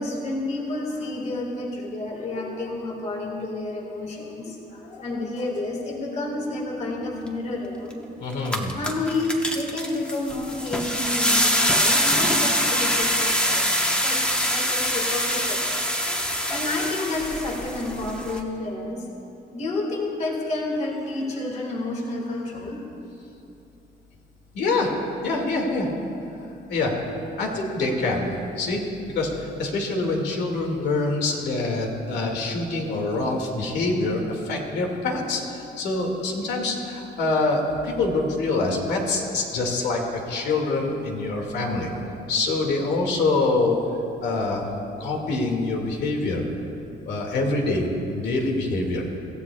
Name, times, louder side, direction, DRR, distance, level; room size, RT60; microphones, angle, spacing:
voice 1, 0.0-8.0 8.8-13.7 14.0-19.2 19.5-22.8, left 2 dB, 40° left, 0 dB, 1.9 m, -30 dB
sound 1, 7.9-8.0 8.3-18.4, equal, 5° left, 1.2 m, -24 dB
voice 2, 8.2-8.7 24.5-24.9 25.2-25.9 26.7-26.9 27.4-28.3 28.6-28.8 29.1-41.9 42.3-44.6 45.0-46.4 47.1-49.0, left 3 dB, 75° left, 0 dB, 2.3 m, -25 dB
25.0 x 15.0 x 2.4 m, 2.7 s
cardioid pair, 140°, 18 cm